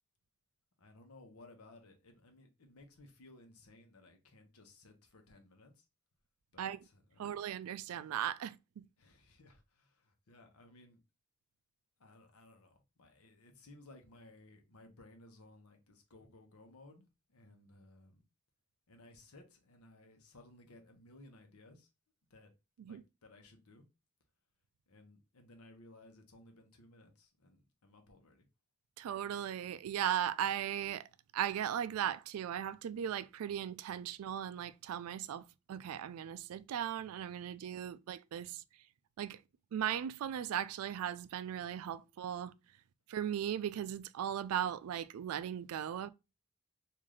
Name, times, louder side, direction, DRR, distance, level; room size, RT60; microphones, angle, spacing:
voice 1, 0.8-5.8 6.5-7.4 9.0-11.0 12.0-18.2 18.9-21.9 22.3-22.5 22.8-23.9 24.9-28.5, left 2 dB, 85° left, 0.9 m, -59 dB
voice 2, 7.2-8.9 22.8-23.0 29.0-31.1 31.3-38.6 39.2-39.4 39.7-42.5 43.1-46.1, right 10 dB, 80° right, 0.3 m, -37 dB
3.2 x 2.6 x 3.7 m
head